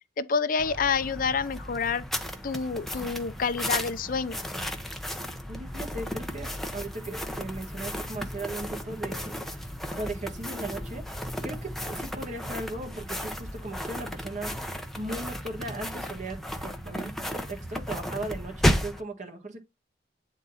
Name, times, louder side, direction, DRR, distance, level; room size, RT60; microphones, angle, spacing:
voice 1, 0.2-2.0 2.4-4.4, left 5 dB, 50° left, 0.6 m, -28 dB
sound 1, 0.6-19.0, equal, ahead, 0.8 m, -34 dB
voice 2, 5.5-11.0 11.4-19.6, right 2 dB, 40° right, 1.5 m, -38 dB
9.2 x 3.8 x 4.0 m
head